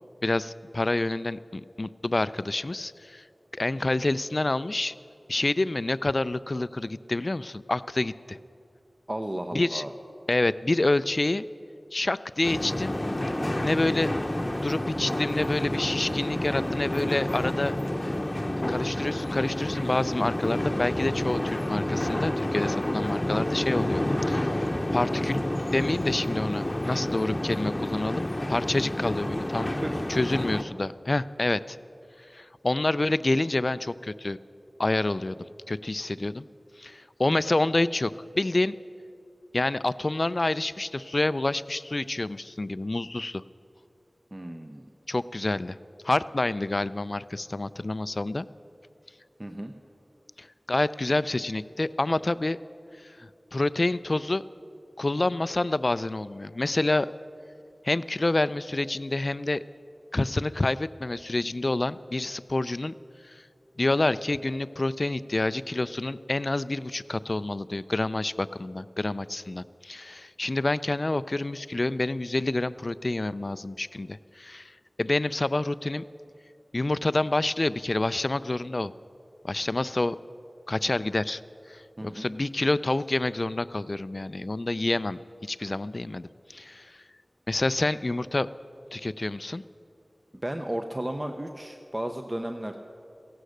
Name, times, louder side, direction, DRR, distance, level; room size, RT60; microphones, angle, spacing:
voice 1, 0.2-3.2 3.5-4.9 5.3-8.4 9.5-9.8 10.3-11.5 11.9-13.0 13.6-14.1 14.5-17.7 18.7-25.4 25.7-29.7 30.1-31.8 32.3-34.4 34.8-36.5 36.8-38.7 39.5-43.4 45.1-45.8 46.0-48.5 50.4-52.6 53.0-54.4 55.0-57.1 57.8-59.6 60.1-62.9 63.2-63.4 63.8-76.0 76.7-78.9 79.4-80.2 80.7-81.4 81.7-87.0 87.5-88.5 88.9-89.6, left 2 dB, 55° left, 16 dB, 0.3 m, -28 dB
voice 2, 9.1-9.9 29.8-30.0 44.3-44.9 49.4-49.7 82.0-82.2 90.3-92.8, right 1 dB, 30° right, 5 dB, 0.7 m, -33 dB
sound 1, 12.4-30.6, left 1 dB, 30° left, 0.8 m, -29 dB
15.5 x 11.5 x 6.5 m, 2.6 s
wide cardioid pair, 45°, 0 cm